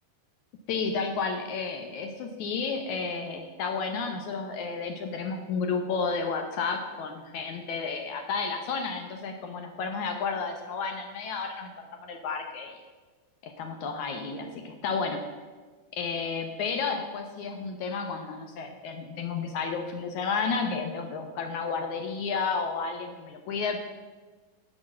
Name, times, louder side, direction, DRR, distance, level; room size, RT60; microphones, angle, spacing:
voice 1, 0.7-11.7 12.0-12.8 13.4-15.2 15.9-23.8, left 5 dB, 70° left, 5 dB, 2.0 m, -32 dB
11.5 x 6.3 x 7.5 m, 1.3 s
omnidirectional pair, 4.1 m